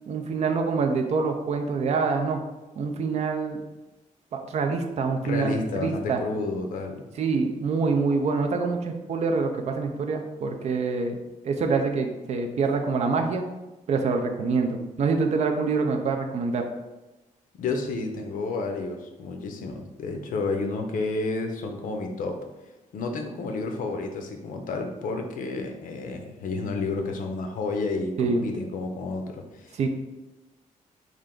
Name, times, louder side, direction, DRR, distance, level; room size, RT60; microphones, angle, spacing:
voice 1, 0.1-2.4 2.8-3.6 4.5-6.2 7.2-11.2 11.4-13.4 13.9-16.6 28.2-28.4 29.8-29.9, right 4 dB, 55° right, 4 dB, 0.4 m, -25 dB
voice 2, 5.2-7.0 17.5-22.4 22.9-29.9, left 3 dB, 80° left, 4 dB, 0.5 m, -31 dB
3.3 x 2.5 x 3.7 m, 1.1 s
wide cardioid pair, 165°, 14 cm